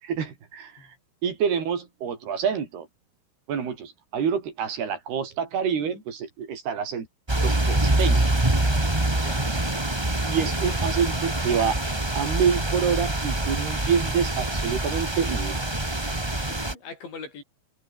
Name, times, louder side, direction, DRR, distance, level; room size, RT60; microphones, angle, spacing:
voice 1, 0.0-0.9 1.2-2.9 3.5-7.1 7.4-8.3 10.3-11.8 12.2-15.7, right 7 dB, 65° right, 5.5 m, -27 dB
sound 1, 7.3-16.7, right 1 dB, 35° right, 0.4 m, -25 dB
voice 2, 9.1-9.6 16.0-17.4, left 5 dB, 85° left, 10.0 m, -43 dB
omnidirectional pair, 5.1 m